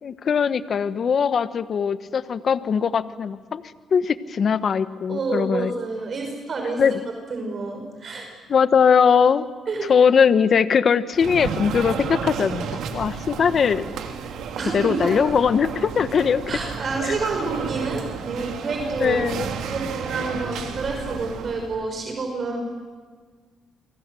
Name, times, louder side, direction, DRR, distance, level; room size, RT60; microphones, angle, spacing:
voice 1, 0.0-3.6 3.9-5.7 6.8-7.0 8.5-9.4 9.9-13.9 14.6-16.4 17.0-17.1 19.0-19.5, left 6 dB, 50° left, 13 dB, 1.2 m, -20 dB
voice 2, 5.1-6.8 7.3-8.3 9.7-9.9 14.6-15.1 16.5-19.2 19.6-22.6, right 3 dB, 45° right, 3 dB, 5.6 m, -28 dB
sound 1, 11.1-21.8, right 6 dB, 80° right, 2.8 m, -32 dB
28.5 x 24.5 x 7.7 m, 1.5 s
cardioid pair, 90°, 0 cm